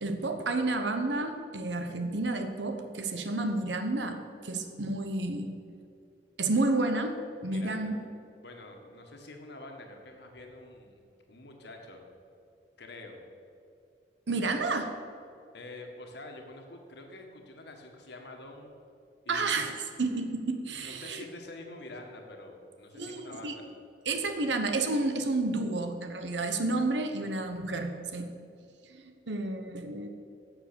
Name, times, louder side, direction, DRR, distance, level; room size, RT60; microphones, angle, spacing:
voice 1, 0.0-5.5 6.4-7.2 7.4-8.0 14.3-14.9 19.3-19.7 20.0-21.2 22.9-23.5 24.1-28.3 28.8-30.1, right 2 dB, 75° right, 6 dB, 1.0 m, -30 dB
voice 2, 7.5-7.9 8.4-11.0 11.3-12.0 12.8-13.2 15.5-18.7 19.3-19.7 20.8-23.7, left 2 dB, 65° left, 3 dB, 1.8 m, -46 dB
11.5 x 7.4 x 6.9 m, 2.5 s
head